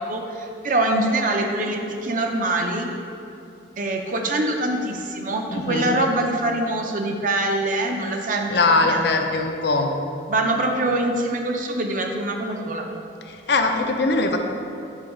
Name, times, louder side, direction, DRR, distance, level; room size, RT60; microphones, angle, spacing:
voice 1, 0.0-2.9 3.8-8.5 8.8-9.1 10.3-12.9, right 2 dB, 45° right, 2 dB, 0.6 m, -24 dB
voice 2, 5.5-6.0 8.5-9.9 13.3-14.4, left 3 dB, 65° left, 4 dB, 0.6 m, -21 dB
7.4 x 3.8 x 5.0 m, 2.7 s
head